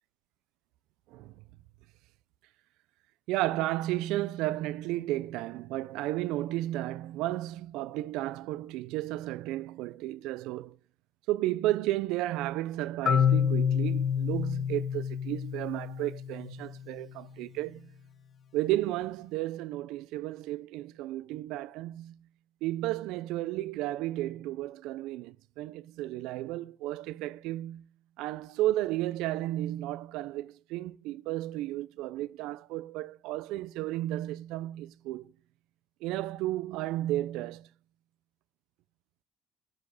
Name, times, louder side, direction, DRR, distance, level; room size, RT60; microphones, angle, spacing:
voice 1, 3.3-10.7 11.3-17.9 18.5-22.2 22.6-27.9 28.2-35.3 36.0-37.7, right 15 dB, 85° right, 0.4 m, -33 dB
Marimba xylophone, 13.1-16.9, left 8 dB, 50° left, 0.7 m, -28 dB
13.0 x 7.9 x 5.3 m
cardioid pair, 95°, 0 cm